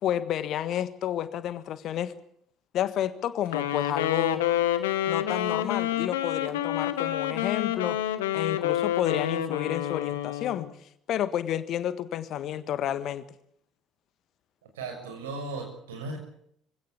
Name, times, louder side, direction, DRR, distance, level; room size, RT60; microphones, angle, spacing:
voice 1, 0.0-2.1 2.7-4.4 5.1-8.0 8.3-10.7 11.1-13.2, left 11 dB, 50° left, 14 dB, 1.5 m, -30 dB
Wind instrument woodwind instrument, 3.4-10.7, left 11 dB, 70° left, 1.5 m, -28 dB
voice 2, 14.7-16.2, right 3 dB, 70° right, 4 dB, 6.5 m, -36 dB
24.5 x 17.0 x 8.5 m, 0.70 s
figure-of-eight pair, 55°, 0 cm